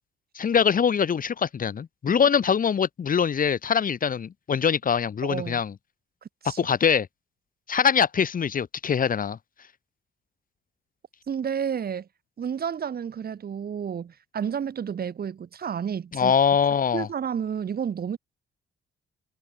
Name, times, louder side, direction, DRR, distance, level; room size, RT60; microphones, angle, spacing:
voice 1, 0.3-5.7 6.4-7.1 7.7-9.4 16.1-17.1, left 7 dB, 45° left, 1.5 m, -23 dB
voice 2, 5.2-5.6 6.4-6.6 11.3-12.1 12.4-16.3 16.9-18.2, right 7 dB, 50° right, 3.2 m, -31 dB
cardioid pair, 90°, 20 cm